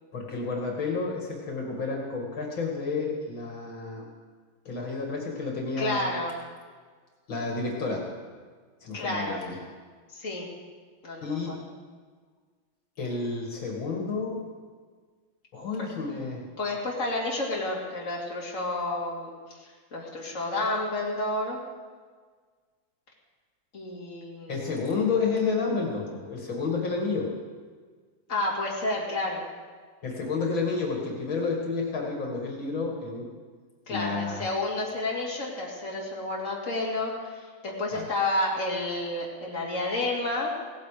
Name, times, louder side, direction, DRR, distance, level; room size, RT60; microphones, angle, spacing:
voice 1, 0.1-4.0 4.6-6.1 7.3-8.0 8.8-9.6 11.2-11.6 13.0-14.4 15.5-16.4 24.5-27.3 30.0-33.3 33.9-34.4 37.9-38.1, left 4 dB, 75° left, -1 dB, 3.0 m, -30 dB
voice 2, 5.8-6.3 8.9-9.4 10.1-10.5 11.0-11.6 15.8-15.9 16.6-21.6 23.7-24.7 28.3-29.4 33.9-40.5, left 2 dB, 40° left, -4 dB, 3.2 m, -30 dB
17.5 x 14.5 x 5.1 m, 1.5 s
omnidirectional pair, 2.2 m